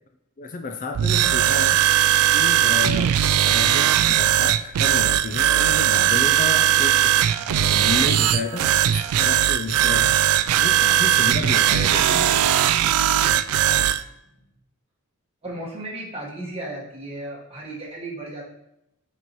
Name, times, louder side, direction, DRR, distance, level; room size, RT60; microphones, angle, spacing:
voice 1, 0.4-1.8 2.3-3.2 3.4-10.2 10.6-12.4, left 4 dB, 35° left, 5 dB, 0.4 m, -31 dB
sound 1, 0.9-14.0, right 11 dB, 75° right, 0.3 m, -19 dB
voice 2, 13.6-13.9 15.4-18.4, right 1 dB, 25° right, -4 dB, 1.5 m, -35 dB
7.3 x 5.3 x 3.1 m, 0.84 s
head